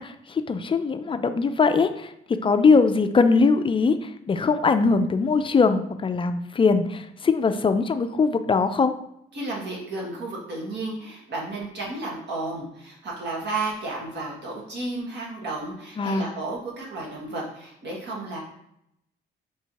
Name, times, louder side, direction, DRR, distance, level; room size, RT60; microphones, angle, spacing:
voice 1, 0.0-8.9 16.0-16.3, left 4 dB, 25° left, 9 dB, 0.4 m, -21 dB
voice 2, 9.3-18.4, right 2 dB, 60° right, -3 dB, 1.7 m, -32 dB
4.1 x 2.7 x 4.6 m, 0.77 s
cardioid pair, 90°, 20 cm